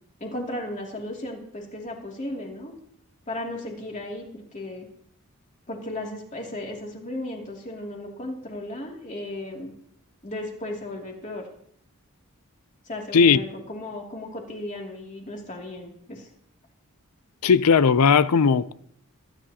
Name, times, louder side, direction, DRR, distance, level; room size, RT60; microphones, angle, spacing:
voice 1, 0.2-2.7 3.3-4.9 5.7-9.7 10.2-11.5 12.9-16.3, left 1 dB, 35° left, 2.6 m, -35 dB
voice 2, 17.4-18.7, left 6 dB, 90° left, 0.5 m, -17 dB
22.0 x 10.5 x 2.9 m
head